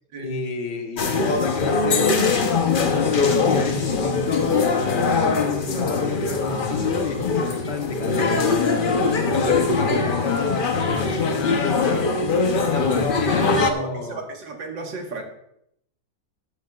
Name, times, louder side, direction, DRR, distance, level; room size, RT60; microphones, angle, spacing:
voice 1, 0.2-2.6 2.9-4.7 5.1-8.8 9.3-12.1 12.5-14.2, left 4 dB, 70° left, 4 dB, 1.8 m, -31 dB
sound 1, 1.0-13.7, left 4 dB, 45° left, 0.7 m, -22 dB
voice 2, 13.2-15.2, right 3 dB, 85° right, 2 dB, 2.2 m, -35 dB
13.5 x 10.5 x 2.4 m, 0.77 s
omnidirectional pair, 1.9 m